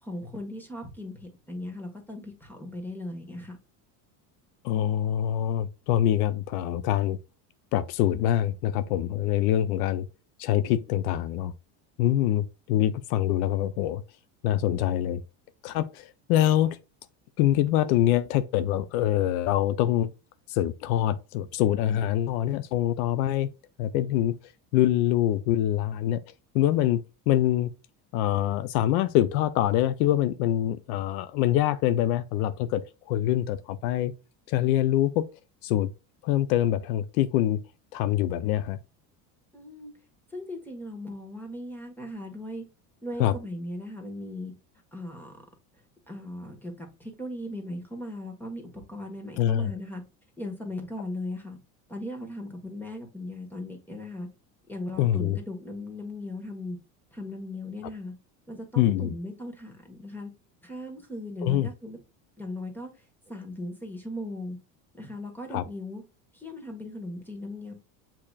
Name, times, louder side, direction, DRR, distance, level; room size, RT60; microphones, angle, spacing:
voice 1, 0.0-3.6 39.5-39.9 40.3-42.6 43.0-44.5 44.9-45.4 46.1-48.6 48.9-50.0 50.4-51.6 51.9-54.3 54.7-56.8 57.1-58.1 58.5-60.3 60.6-62.0 62.4-64.6 64.9-66.0 66.3-67.7, left 1 dB, 5° left, 1.3 m, -38 dB
voice 2, 4.6-7.2 7.7-10.1 10.4-11.5 12.0-14.0 14.4-15.2 15.6-16.8 17.4-20.1 20.5-23.5 23.8-24.4 24.7-26.2 26.5-27.7 28.1-34.1 34.5-35.2 35.6-35.9 36.2-37.6 37.9-38.8 43.2-43.3 49.4-49.7 55.0-55.4 58.8-59.1 61.4-61.7 65.5-65.6, left 12 dB, 85° left, 0.6 m, -25 dB
6.8 x 2.9 x 2.3 m
supercardioid pair, 125°, 42 cm